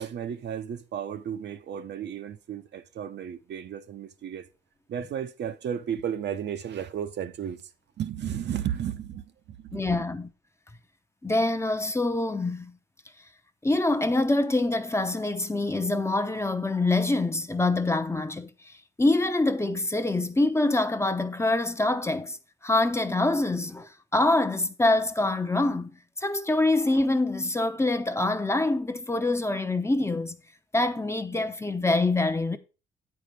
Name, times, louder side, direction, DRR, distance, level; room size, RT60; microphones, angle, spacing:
voice 1, 0.0-4.5 4.9-7.6 8.0-10.0, right 9 dB, 60° right, 0.8 m, -34 dB
voice 2, 9.7-10.3 11.2-12.7 13.6-18.7 19.0-22.4 22.6-25.9 26.2-30.3 30.7-32.6, left 2 dB, 15° left, 0.7 m, -25 dB
8.4 x 4.8 x 5.2 m
cardioid pair, 90°, 20 cm